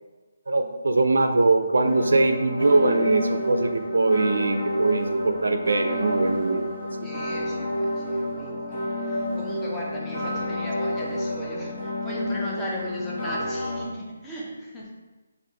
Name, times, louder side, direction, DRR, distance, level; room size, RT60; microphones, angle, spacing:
voice 1, 0.5-6.7, right 3 dB, 90° right, 7 dB, 0.4 m, -22 dB
sound 1, 1.8-13.8, left 1 dB, 30° left, 1.0 m, -29 dB
voice 2, 7.0-14.9, left 1 dB, 10° left, -5 dB, 0.6 m, -36 dB
3.4 x 2.5 x 3.9 m, 1.2 s
hypercardioid pair, 165°, 0 cm